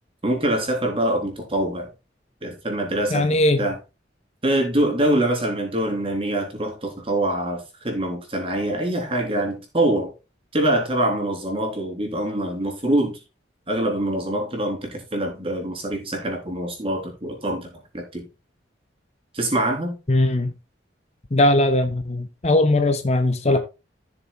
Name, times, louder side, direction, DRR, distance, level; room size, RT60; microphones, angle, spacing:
voice 1, 0.2-1.9 2.4-3.8 4.4-10.1 10.5-13.2 13.7-17.7 17.9-18.3 19.3-20.0 23.5-23.6, right 1 dB, 30° right, 3.8 m, -24 dB
voice 2, 3.1-3.7 20.1-20.5 21.3-23.6, left 1 dB, 35° left, 0.9 m, -19 dB
15.0 x 6.9 x 2.3 m
head